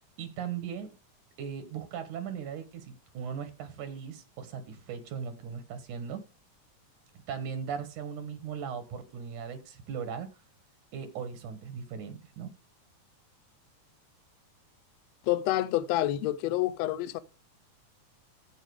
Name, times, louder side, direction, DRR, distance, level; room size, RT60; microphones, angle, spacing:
voice 1, 0.2-0.9 1.4-6.2 7.3-10.3 10.9-12.5, right 7 dB, 80° right, 3.0 m, -38 dB
voice 2, 15.3-17.2, left 14 dB, 75° left, 1.7 m, -28 dB
15.0 x 5.5 x 4.9 m
omnidirectional pair, 3.4 m